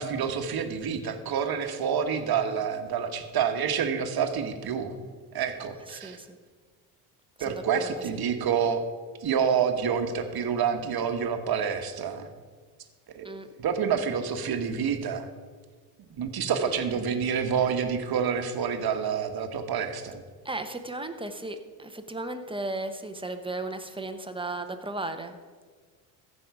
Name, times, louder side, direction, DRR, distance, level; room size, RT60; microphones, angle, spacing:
voice 1, 0.0-4.9 5.3-6.2 7.4-8.8 9.2-12.3 13.1-13.3 13.6-15.3 16.2-20.2, right 7 dB, 50° right, 7 dB, 1.3 m, -28 dB
voice 2, 5.9-6.3 7.4-7.9 13.2-13.5 16.6-16.7 20.4-25.4, right 2 dB, 10° right, 7 dB, 1.1 m, -35 dB
15.0 x 5.6 x 4.8 m, 1.5 s
supercardioid pair, 70°, 47 cm